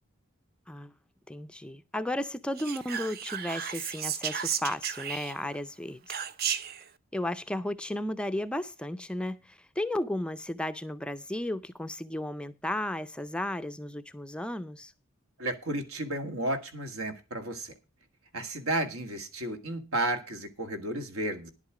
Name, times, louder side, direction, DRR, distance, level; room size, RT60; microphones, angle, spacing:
voice 1, 1.3-6.2 7.1-14.9, left 1 dB, 5° left, 0.4 m, -34 dB
Whispering, 2.6-5.6 6.1-6.8, right 8 dB, 45° right, 0.6 m, -34 dB
voice 2, 15.4-17.7 18.3-21.5, right 1 dB, 75° right, 1.8 m, -33 dB
11.0 x 8.2 x 4.9 m
head